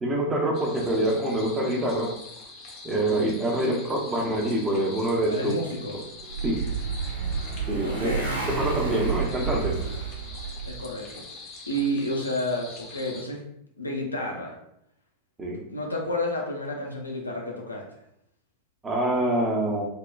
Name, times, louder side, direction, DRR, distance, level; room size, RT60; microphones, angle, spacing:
voice 1, 0.0-2.1 2.8-5.5 6.4-6.7 7.7-8.1 8.5-9.8 15.4-15.6 18.8-19.9, right 1 dB, 20° right, 0 dB, 0.6 m, -25 dB
sound 1, 0.5-13.2, left 3 dB, 35° left, 0.6 m, -44 dB
voice 2, 5.3-6.0 7.8-8.3 10.6-11.2 11.7-13.4 13.8-14.6 15.7-17.8, left 1 dB, 80° left, -1 dB, 0.5 m, -30 dB
Motorcycle, 5.8-10.8, right 5 dB, 70° right, 1.0 m, -30 dB
3.5 x 2.1 x 2.2 m, 0.76 s
figure-of-eight pair, 90°, 0 cm